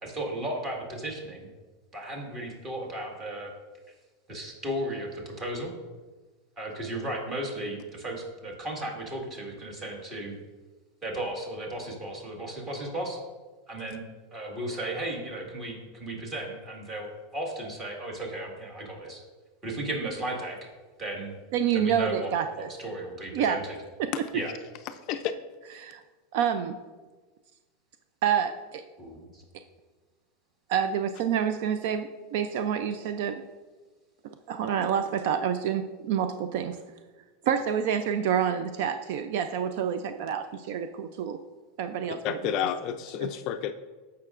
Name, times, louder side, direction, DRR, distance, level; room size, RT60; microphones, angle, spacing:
voice 1, 0.0-1.5 1.9-3.5 4.3-5.7 6.6-10.3 11.0-13.2 13.7-14.0 14.3-19.2 19.6-20.7 21.0-21.3 21.7-23.7 24.3-24.5 29.0-29.4, right 1 dB, 20° right, -1 dB, 1.7 m, -35 dB
voice 2, 21.5-22.7 23.3-23.6 24.0-24.2 25.8-26.0 26.3-26.8 28.2-28.8 30.7-33.4 34.2-36.8 37.4-41.4 41.8-42.5 43.2-43.3, right 8 dB, 55° right, 9 dB, 0.4 m, -28 dB
voice 3, 42.2-43.7, left 9 dB, 40° left, 9 dB, 0.4 m, -30 dB
14.0 x 5.7 x 2.5 m, 1.3 s
supercardioid pair, 160°, 0 cm